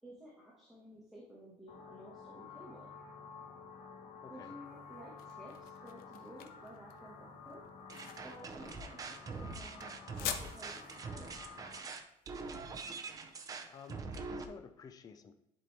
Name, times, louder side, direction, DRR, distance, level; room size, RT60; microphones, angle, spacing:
voice 1, 0.0-2.9 4.3-7.6 8.2-11.7, equal, ahead, -6 dB, 1.4 m, -54 dB
sound 1, 1.7-11.8, left 5 dB, 60° left, 1.3 m, -52 dB
voice 2, 4.2-4.6 13.2-15.4, left 6 dB, 25° left, 7 dB, 0.5 m, -53 dB
sound 2, 4.7-13.7, left 9 dB, 90° left, 0.8 m, -47 dB
sound 3, 7.9-14.4, right 4 dB, 25° right, 0.6 m, -44 dB
10.5 x 4.3 x 3.3 m, 0.90 s
cardioid pair, 175°, 15 cm